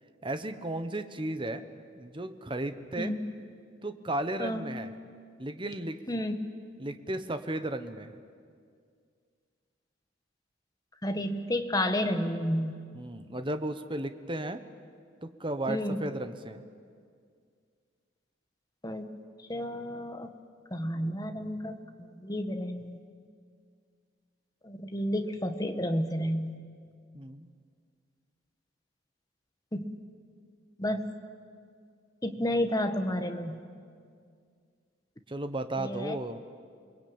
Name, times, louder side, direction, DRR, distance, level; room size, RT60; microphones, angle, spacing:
voice 1, 0.2-1.6 1.9-3.1 3.8-4.9 5.4-6.0 6.8-8.2 12.9-14.6 15.2-16.6 27.1-27.5 35.3-36.4, right 1 dB, 25° right, 9 dB, 1.1 m, -34 dB
voice 2, 3.0-3.3 4.4-4.7 6.1-6.3 11.0-12.7 15.7-16.1 18.8-19.1 19.5-20.3 20.7-23.0 24.6-26.6 29.7-29.9 30.8-31.1 32.2-33.6 35.8-36.2, left 1 dB, 20° left, 6 dB, 1.4 m, -31 dB
28.5 x 21.0 x 8.9 m, 2.2 s
head